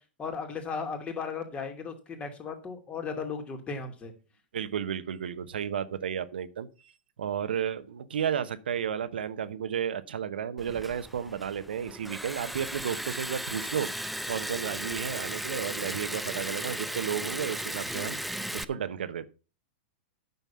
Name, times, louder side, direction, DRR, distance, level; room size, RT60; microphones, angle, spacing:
voice 1, 0.2-4.1, left 5 dB, 20° left, 2.8 m, -36 dB
voice 2, 4.5-6.9 7.2-18.2 18.5-19.3, right 8 dB, 80° right, 1.0 m, -33 dB
Liquid, 10.6-18.6, right 1 dB, ahead, 0.6 m, -36 dB
9.5 x 7.0 x 5.7 m
hypercardioid pair, 110°, 5 cm